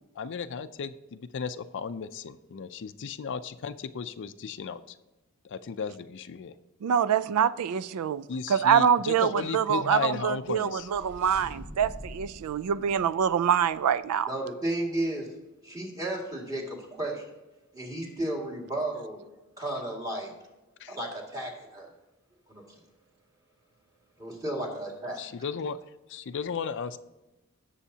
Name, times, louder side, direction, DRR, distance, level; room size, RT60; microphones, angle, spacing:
voice 1, 0.1-5.0 5.4-6.5 8.3-10.9 20.8-21.0 25.2-25.8 26.1-27.0, left 6 dB, 55° left, 0.4 m, -35 dB
voice 2, 6.8-8.2 8.5-14.3, right 8 dB, 85° right, 0.4 m, -25 dB
sound 1, 10.4-14.0, equal, 35° right, 2.9 m, -46 dB
voice 3, 14.3-15.3 15.6-17.3 17.7-19.2 19.6-20.3 20.9-21.9 22.5-22.6 24.2-25.2, right 1 dB, 15° right, 2.2 m, -33 dB
17.0 x 7.0 x 2.8 m
head